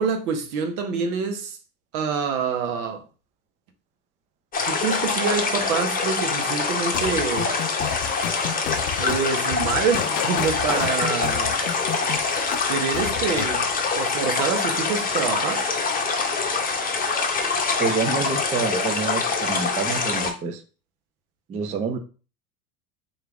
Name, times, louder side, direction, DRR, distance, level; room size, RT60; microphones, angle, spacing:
voice 1, 0.0-1.6 1.9-3.0 4.6-7.5 9.0-11.6 12.7-13.6 13.9-15.7, right 6 dB, 75° right, 1.1 m, -26 dB
sound 1, 4.5-20.3, left 4 dB, 20° left, 0.8 m, -25 dB
sound 2, 6.9-13.6, left 12 dB, 80° left, 0.5 m, -31 dB
voice 2, 17.8-20.6 21.5-22.0, right 5 dB, 20° right, 0.3 m, -27 dB
3.8 x 3.3 x 3.5 m
supercardioid pair, 110°, 44 cm